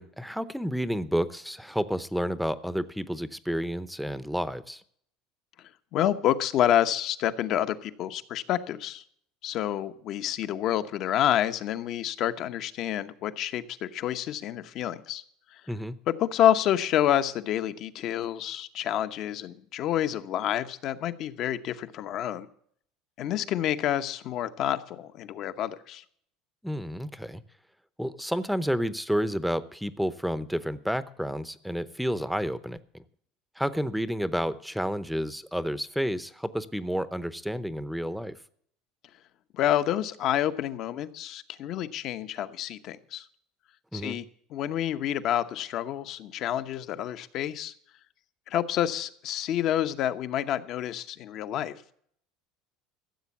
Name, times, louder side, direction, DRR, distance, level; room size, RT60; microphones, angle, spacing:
voice 1, 0.0-4.8 15.7-16.0 26.6-27.4 28.0-33.0 33.6-38.3 43.9-44.2, equal, ahead, 15 dB, 0.7 m, -30 dB
voice 2, 5.6-9.0 9.4-15.2 15.5-15.6 16.1-22.5 23.2-26.0 39.5-43.3 43.9-47.7 48.5-51.8, left 11 dB, 50° left, 11 dB, 0.9 m, -28 dB
14.5 x 7.5 x 7.1 m, 0.64 s
supercardioid pair, 120°, 0 cm